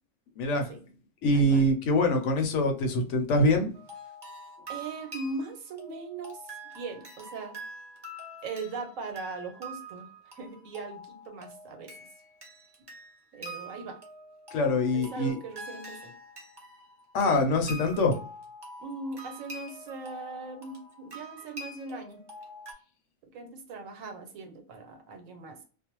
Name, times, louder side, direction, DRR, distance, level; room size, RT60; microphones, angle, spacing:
voice 1, 0.4-0.7 1.2-3.7 14.5-15.4 17.1-18.2, left 1 dB, 75° left, 0.9 m, -24 dB
sound 1, 3.7-22.7, right 1 dB, 35° right, 0.4 m, -45 dB
voice 2, 4.7-7.6 8.4-11.9 13.3-14.0 14.6-16.1 18.8-22.2 23.3-25.6, right 3 dB, 85° right, 1.1 m, -40 dB
2.5 x 2.0 x 2.9 m
omnidirectional pair, 1.3 m